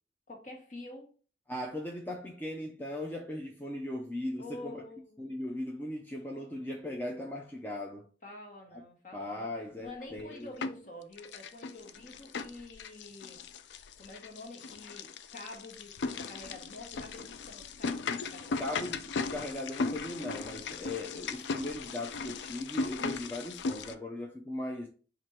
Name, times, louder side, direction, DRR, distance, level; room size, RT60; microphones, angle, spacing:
voice 1, 0.3-1.1 4.4-5.3 8.2-9.5 9.8-13.4 14.0-18.8, left 2 dB, 45° left, 1.2 m, -48 dB
voice 2, 1.5-4.8 5.2-8.1 9.1-10.5 18.6-24.9, left 1 dB, 10° left, 0.4 m, -38 dB
sound 1, 10.0-10.9 11.2-23.9, left 4 dB, 85° left, 0.4 m, -37 dB
4.4 x 2.5 x 4.5 m
head